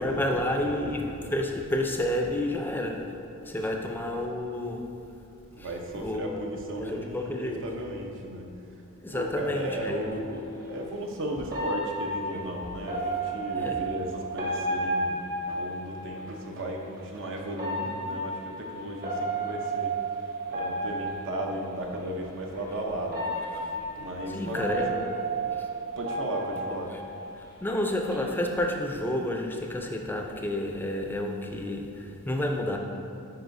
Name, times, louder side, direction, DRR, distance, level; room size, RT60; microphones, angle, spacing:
voice 1, 0.0-3.1 3.4-4.9 5.6-5.7 5.9-6.3 6.8-7.6 9.0-10.2 13.5-14.0 23.5-23.7 24.3-25.1 25.5-25.7 26.5-26.6 26.9-27.0 27.4-32.8, left 1 dB, 10° left, 2 dB, 0.5 m, -30 dB
voice 2, 5.5-8.5 9.1-20.0 20.5-23.2 23.9-25.0 25.4-25.5 26.0-26.9, right 1 dB, 60° right, 1 dB, 0.7 m, -35 dB
sound 1, 10.0-10.1 11.5-16.2 17.5-21.7 22.5-22.6 23.1-27.5 27.8-28.2, right 2 dB, 45° right, 1.2 m, -32 dB
9.4 x 4.7 x 2.6 m, 2.6 s
head